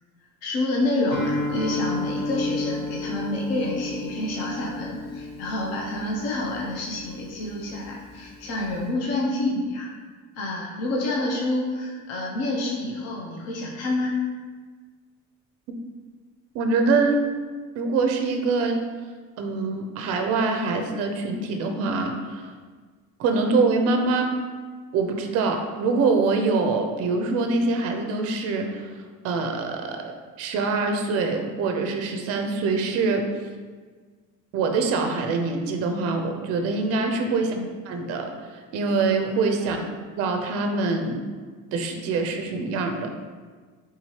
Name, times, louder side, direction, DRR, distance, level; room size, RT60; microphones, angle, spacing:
voice 1, 0.4-9.9 10.4-14.2 37.3-37.7 39.6-39.9, left 2 dB, 55° left, -1 dB, 0.6 m, -28 dB
Guitar, 1.1-8.9, left 3 dB, 20° right, 0.9 m, -32 dB
voice 2, 16.5-17.2 17.8-18.8 19.4-22.5 23.2-24.3 24.9-29.0 29.2-30.1 30.4-33.3 34.5-37.5 37.9-38.3 38.7-39.8 40.2-41.2 41.7-43.1, right 3 dB, 50° right, 4 dB, 0.4 m, -24 dB
3.6 x 3.0 x 2.8 m, 1.5 s
cardioid pair, 165°, 32 cm